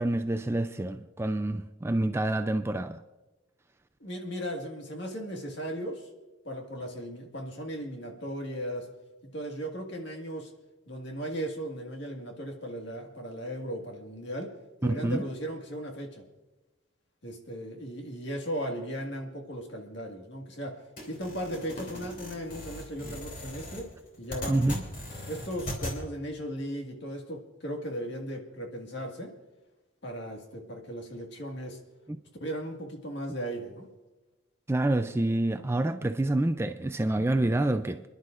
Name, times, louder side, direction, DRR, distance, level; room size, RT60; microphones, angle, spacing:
voice 1, 0.0-3.0 14.8-15.2 24.5-24.8 32.1-32.2 34.7-38.0, right 1 dB, 10° right, 0.3 m, -27 dB
voice 2, 4.0-6.1 6.5-8.9 9.3-10.5 10.9-14.5 14.8-16.2 17.2-20.8 21.0-23.9 24.2-24.7 25.3-29.3 30.0-31.8 32.4-33.9, equal, 60° left, 1.8 m, -37 dB
sound 1, 21.0-26.0, left 1 dB, 40° left, 3.0 m, -39 dB
28.0 x 11.0 x 2.5 m
head